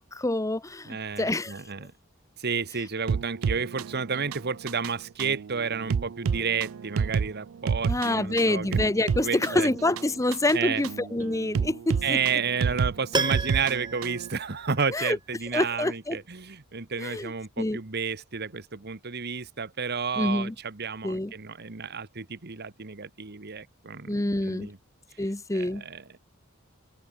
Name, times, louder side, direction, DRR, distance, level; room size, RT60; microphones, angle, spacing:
voice 1, 0.0-1.5 7.9-12.2 14.9-15.2 15.5-16.2 17.0-17.8 20.2-20.5 21.0-21.3 24.1-24.7 25.2-25.8, left 1 dB, 15° left, 0.9 m, -27 dB
voice 2, 0.8-1.9 2.4-9.7 10.5-10.8 12.0-24.8 25.5-26.2, right 5 dB, 50° right, 1.4 m, -31 dB
sound 1, 3.1-14.3, right 6 dB, 75° right, 0.4 m, -31 dB
Piano, 13.1-15.2 15.5-15.6, right 4 dB, 20° right, 1.8 m, -32 dB
head